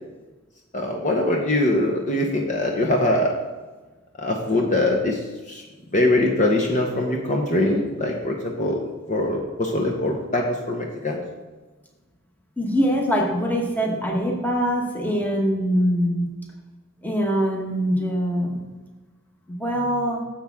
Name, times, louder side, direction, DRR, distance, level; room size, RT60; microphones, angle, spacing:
voice 1, 0.7-3.3 4.2-5.2 5.5-5.6 5.9-11.2, left 1 dB, 35° left, 0 dB, 0.9 m, -22 dB
voice 2, 12.6-16.3 17.0-18.6 19.5-20.2, equal, 10° left, 0 dB, 1.3 m, -23 dB
10.0 x 7.3 x 3.6 m, 1.3 s
head